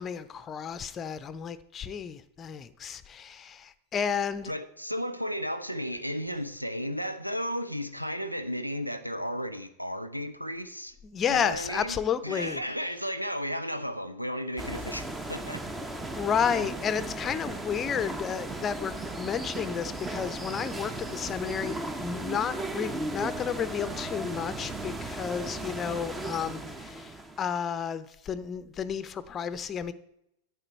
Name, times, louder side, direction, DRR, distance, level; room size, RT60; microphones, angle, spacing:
voice 1, 0.0-4.5 11.1-12.6 15.9-29.9, left 7 dB, 25° left, 15 dB, 0.7 m, -32 dB
voice 2, 4.5-10.9 11.3-12.0 12.2-15.7 16.5-16.6, equal, 90° right, 9 dB, 0.6 m, -34 dB
sound 1, 14.6-27.5, right 2 dB, 10° right, 0.9 m, -36 dB
10.5 x 8.4 x 4.4 m, 0.79 s
figure-of-eight pair, 90°, 0 cm